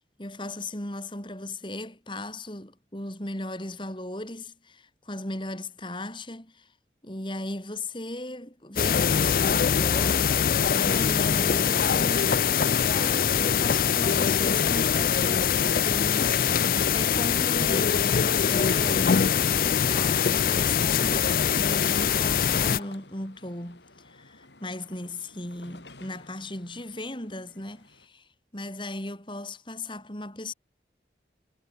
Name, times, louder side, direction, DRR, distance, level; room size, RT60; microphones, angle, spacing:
voice 1, 0.2-6.7 7.0-10.2 10.7-30.5, left 1 dB, 25° left, 4.9 m, -37 dB
sound 1, 8.8-22.8, left 7 dB, 50° left, 0.4 m, -23 dB
sound 2, 15.6-28.1, left 2 dB, 80° left, 7.0 m, -52 dB
head